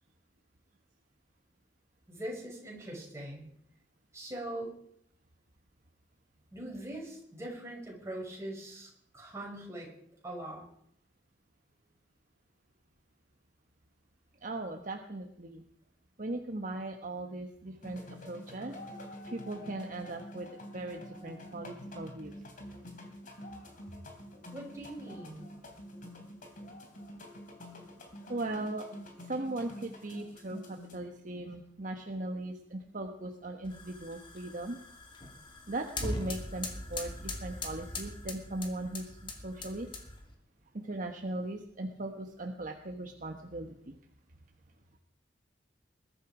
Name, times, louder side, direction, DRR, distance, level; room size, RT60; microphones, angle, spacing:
voice 1, 2.1-3.5 4.1-4.8 6.5-9.9 10.2-10.6 24.5-25.5, right 1 dB, 15° right, -2 dB, 5.8 m, -42 dB
voice 2, 14.4-15.6 16.2-18.8 19.2-22.3 28.3-28.9 29.2-34.8 35.7-39.9 40.7-43.9 44.3-44.4, right 2 dB, 45° right, 3 dB, 1.2 m, -39 dB
sound 1, 17.8-31.0, equal, 50° left, 2.9 m, -47 dB
sound 2, 33.6-40.3, left 2 dB, 30° left, 2.4 m, -41 dB
21.0 x 12.0 x 5.0 m, 0.69 s
head